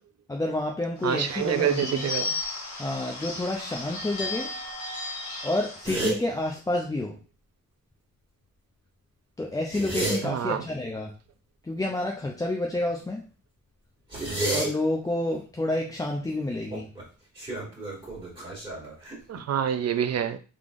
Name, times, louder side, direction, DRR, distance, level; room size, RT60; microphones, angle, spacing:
voice 1, 0.3-2.1 2.8-4.5 5.4-7.2 9.4-11.1 11.6-13.2 14.5-16.9, left 1 dB, 10° left, 0 dB, 0.4 m, -29 dB
Bird / Bell, 1.0-5.9, left 3 dB, 60° left, 1.4 m, -35 dB
voice 2, 1.0-2.4 10.2-10.6 19.3-20.4, right 9 dB, 55° right, 9 dB, 0.4 m, -27 dB
sound 1, 5.8-6.2 9.6-10.2 14.1-14.7 16.7-17.0 17.4-19.4, right 2 dB, 15° right, 2.0 m, -30 dB
3.6 x 3.3 x 2.5 m, 0.35 s
cardioid pair, 100°, 32 cm